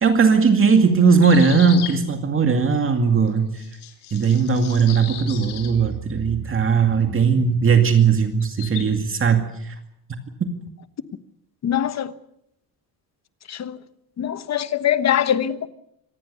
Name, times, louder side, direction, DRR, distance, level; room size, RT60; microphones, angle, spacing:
voice 1, 0.0-3.5 4.1-9.7, right 5 dB, 30° right, 2.3 m, -18 dB
sound 1, 1.2-2.0 3.3-3.4 3.6-5.7 8.4-8.8, left 11 dB, 80° left, 4.0 m, -36 dB
voice 2, 11.6-12.1 13.5-13.8 14.2-15.7, left 10 dB, 45° left, 1.2 m, -22 dB
26.0 x 19.0 x 6.9 m
cardioid pair, 140°, 39 cm